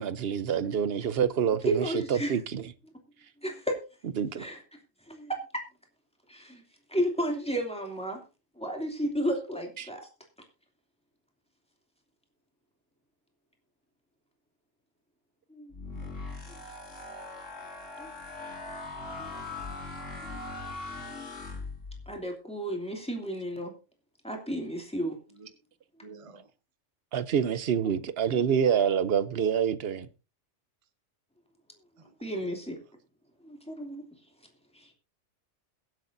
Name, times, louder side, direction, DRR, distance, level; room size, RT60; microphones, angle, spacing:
voice 1, 0.0-1.8 2.1-2.6 4.2-4.5 9.8-9.9 27.1-30.1, right 8 dB, 60° right, 0.9 m, -27 dB
voice 2, 1.7-2.3 3.4-3.7 4.4-4.6 5.1-5.4 6.3-6.6 6.9-8.2 8.6-10.0 15.5-16.1 16.5-16.6 18.0-18.1 19.2-19.4 20.2-20.4 20.9-21.0 22.1-23.7 24.2-25.2 27.8-27.9 28.3-28.4 32.2-32.8 33.4-34.0 34.7-34.9, right 1 dB, 5° left, 2.6 m, -32 dB
sound 1, 15.7-22.2, left 3 dB, 90° left, 2.9 m, -40 dB
voice 3, 26.0-26.5 32.0-32.4 32.8-32.9, right 4 dB, 30° right, 1.0 m, -51 dB
22.5 x 8.0 x 2.6 m
omnidirectional pair, 1.3 m